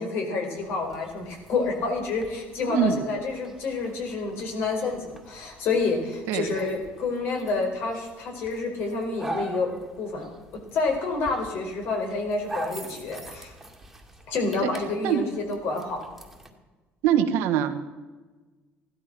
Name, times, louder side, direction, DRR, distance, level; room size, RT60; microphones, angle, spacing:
voice 1, 0.0-10.3 10.7-13.5 14.3-16.0, left 3 dB, 65° left, 3 dB, 4.3 m, -28 dB
sound 1, 0.6-16.5, right 2 dB, 5° right, 2.1 m, -43 dB
voice 2, 2.7-3.0 6.3-6.6 14.6-14.7 15.0-15.2 17.0-17.7, right 9 dB, 80° right, 7 dB, 1.5 m, -23 dB
15.5 x 12.0 x 6.1 m, 1.3 s
cardioid pair, 120°, 4 cm